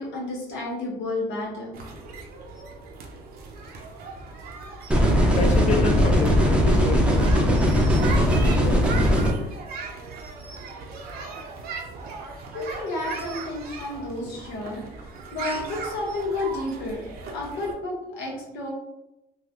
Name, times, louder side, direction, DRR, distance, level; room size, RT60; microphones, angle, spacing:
voice 1, 0.0-2.0 12.5-18.7, left 2 dB, 90° left, -3 dB, 1.2 m, -31 dB
sound 1, 1.7-17.7, right 4 dB, 65° right, 0.7 m, -38 dB
sound 2, 4.9-9.3, equal, 5° right, 0.6 m, -19 dB
voice 2, 5.1-8.2 8.6-8.8, left 3 dB, 45° left, 3 dB, 0.7 m, -30 dB
3.8 x 2.4 x 2.9 m, 0.89 s
cardioid pair, 110°, 17 cm